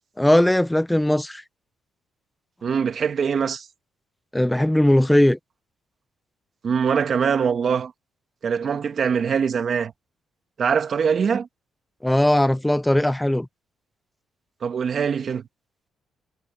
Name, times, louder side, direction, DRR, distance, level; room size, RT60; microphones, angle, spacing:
voice 1, 0.2-1.4 4.3-5.4 12.0-13.5, left 1 dB, 5° left, 0.6 m, -19 dB
voice 2, 2.6-3.7 6.6-7.9 8.4-9.9 10.6-11.5 14.6-15.4, right 6 dB, 50° right, 1.5 m, -23 dB
cardioid pair, 90°, 0 cm